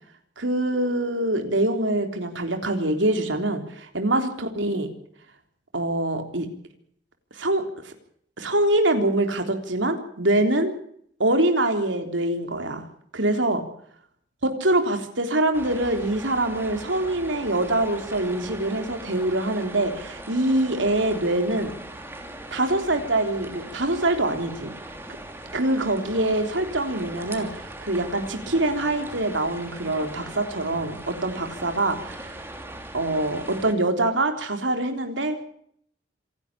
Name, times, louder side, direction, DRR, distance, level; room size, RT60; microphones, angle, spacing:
voice 1, 0.4-4.9 5.7-6.5 7.3-7.9 8.4-10.7 11.2-12.9 13.1-13.6 14.4-21.7 22.5-24.7 25.5-32.4 32.9-35.4, right 1 dB, 85° right, 5 dB, 3.6 m, -24 dB
sound 1, 15.5-33.7, right 1 dB, 10° right, 3.1 m, -40 dB
27.0 x 11.5 x 8.6 m, 0.64 s
head